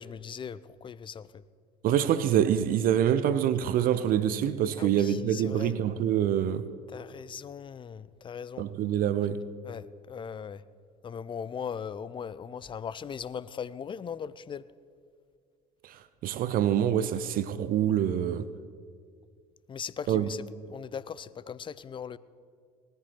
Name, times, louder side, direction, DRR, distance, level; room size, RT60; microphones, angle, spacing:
voice 1, 0.0-1.4 4.8-5.7 6.9-8.7 9.6-10.6 11.0-14.6 19.7-20.4 20.7-22.2, left 7 dB, 25° left, 0.5 m, -39 dB
voice 2, 1.8-6.7 8.6-9.5 15.8-18.5 20.1-20.3, right 10 dB, 50° right, 0.6 m, -26 dB
19.5 x 14.0 x 3.3 m
hypercardioid pair, 65°, 19 cm